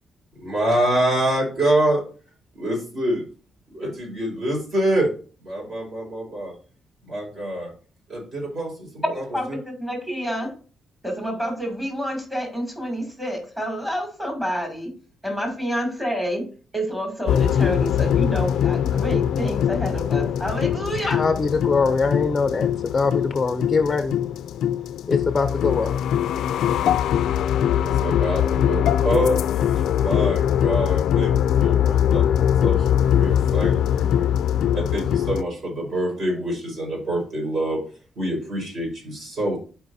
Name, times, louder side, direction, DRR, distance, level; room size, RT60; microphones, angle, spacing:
voice 1, 0.4-2.0 2.6-3.2 3.7-5.1 5.4-6.5 7.0-7.7 8.1-9.2 27.7-34.4 34.7-37.8 38.2-39.6, right 1 dB, 45° right, 4.6 m, -26 dB
voice 2, 9.1-10.5 11.0-14.9 15.2-21.2, equal, 10° right, 2.6 m, -28 dB
sound 1, 17.3-35.4, left 9 dB, 90° left, 0.3 m, -22 dB
voice 3, 21.0-24.2 25.1-26.0, left 4 dB, 20° left, 0.5 m, -22 dB
13.0 x 4.8 x 2.7 m
cardioid pair, 150°, 0 cm